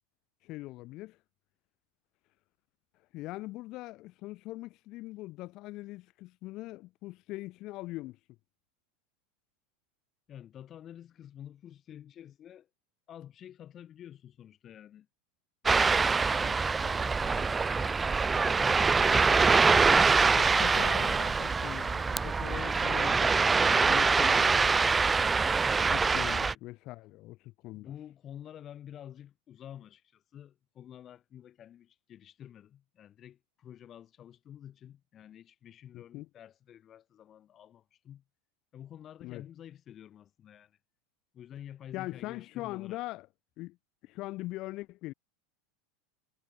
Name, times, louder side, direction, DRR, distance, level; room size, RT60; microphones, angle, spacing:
voice 1, 0.4-1.2 3.1-8.2 20.3-24.6 25.9-27.9 35.9-36.3 39.2-39.4 41.9-43.3 43.6-43.8 44.0-45.1, left 19 dB, 45° left, 2.3 m, -41 dB
voice 2, 10.3-12.7 13.1-15.1 15.8-19.6 26.3-26.6 27.7-38.2 38.7-40.8 41.3-43.0, left 10 dB, 30° left, 1.9 m, -49 dB
Ocean, 15.7-26.5, right 4 dB, 15° right, 0.4 m, -24 dB
supercardioid pair, 145°, 0 cm